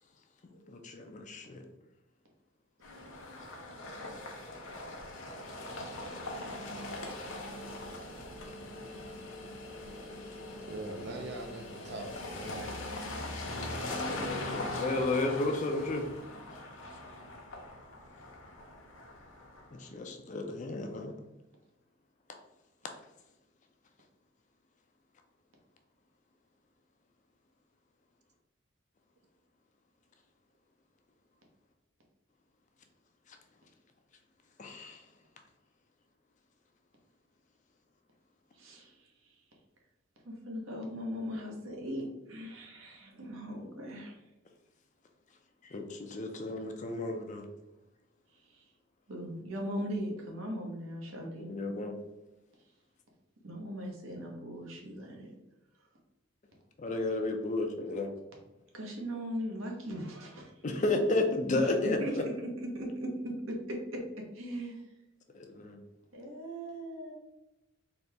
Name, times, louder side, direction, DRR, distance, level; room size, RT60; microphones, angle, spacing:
voice 1, 0.7-1.6 13.9-16.1 19.7-21.1 34.6-35.0 45.7-47.5 51.4-52.0 56.8-58.1 60.6-62.0 65.3-65.8, left 2 dB, 35° left, 4 dB, 0.5 m, -32 dB
sound 1, 2.8-19.8, left 1 dB, 65° left, 0.8 m, -41 dB
voice 2, 10.7-12.8, right 2 dB, 50° right, 4 dB, 0.5 m, -42 dB
voice 3, 38.5-39.1 40.2-44.2 48.4-48.6 49.1-51.5 53.4-55.3 58.7-60.5 61.5-64.8 66.1-67.1, equal, 70° right, 1 dB, 1.0 m, -39 dB
4.0 x 2.8 x 3.4 m, 0.98 s
head